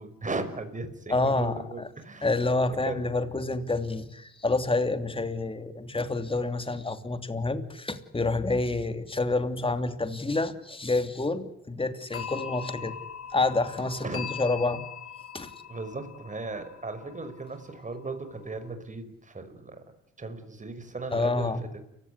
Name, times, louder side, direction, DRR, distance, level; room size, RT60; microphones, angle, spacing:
voice 1, 0.0-2.4 2.7-3.0 14.0-14.3 15.7-19.8 20.2-21.6, right 3 dB, 25° right, 9 dB, 5.8 m, -37 dB
voice 2, 1.1-1.9 2.2-13.0 13.3-14.8 15.3-15.5 21.1-21.6, left 3 dB, 20° left, 9 dB, 2.9 m, -28 dB
sound 1, 12.1-18.7, left 8 dB, 45° left, 5.5 m, -41 dB
30.0 x 17.0 x 9.7 m, 0.81 s
cardioid pair, 90°, 30 cm